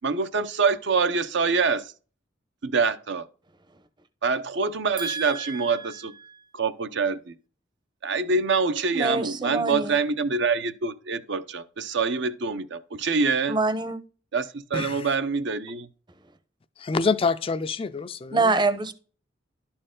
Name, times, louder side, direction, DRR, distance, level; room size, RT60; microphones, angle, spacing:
voice 1, 0.0-1.9 2.6-3.3 4.2-6.1 6.5-7.3 8.0-13.6 14.3-15.9, right 4 dB, 65° right, 0.6 m, -25 dB
voice 2, 5.0-5.9 6.2-6.4 8.9-9.9 13.5-14.0 18.3-18.9, right 3 dB, 25° right, 0.7 m, -26 dB
voice 3, 14.7-15.1 16.8-18.6, left 4 dB, 30° left, 0.4 m, -26 dB
11.5 x 4.4 x 3.7 m
head